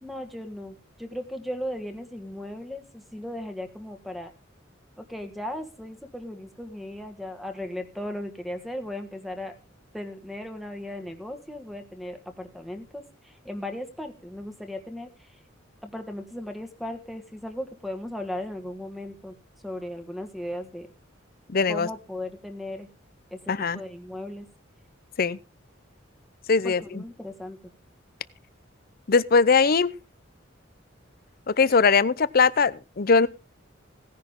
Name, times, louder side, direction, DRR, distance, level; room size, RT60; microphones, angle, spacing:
voice 1, 0.0-4.3 5.0-9.6 9.9-15.4 15.8-19.4 19.6-20.9 21.7-22.9 23.3-24.5 26.6-27.6, left 1 dB, ahead, 1.8 m, -37 dB
voice 2, 21.5-21.9 23.5-23.8 25.2-25.4 26.5-27.0 29.1-29.9 31.5-33.3, left 5 dB, 50° left, 0.6 m, -21 dB
17.0 x 10.5 x 3.7 m
head